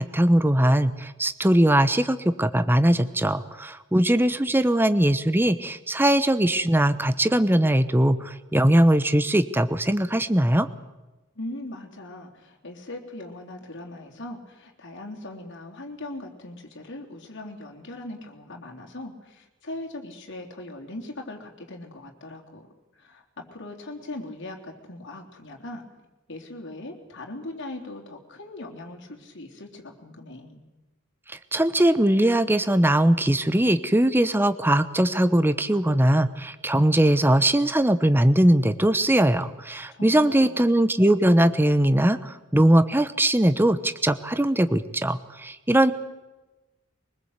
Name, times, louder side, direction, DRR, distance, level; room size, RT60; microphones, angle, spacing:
voice 1, 0.0-10.7 31.5-45.9, right 1 dB, 10° right, 12 dB, 0.9 m, -20 dB
voice 2, 11.4-25.8 26.3-30.6 39.9-40.6, left 2 dB, 60° left, 1 dB, 3.5 m, -40 dB
23.0 x 20.5 x 8.1 m, 1.1 s
head